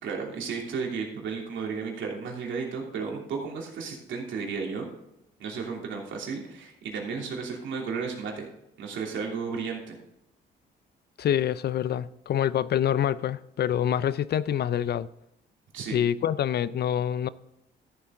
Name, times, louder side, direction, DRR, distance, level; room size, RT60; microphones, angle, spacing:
voice 1, 0.0-4.9 5.4-8.5 8.8-10.0 15.7-16.0, right 5 dB, 75° right, 3.0 m, -33 dB
voice 2, 11.2-15.1 15.9-17.3, left 10 dB, 55° left, 0.5 m, -26 dB
13.0 x 7.8 x 3.7 m
cardioid pair, 90°, 20 cm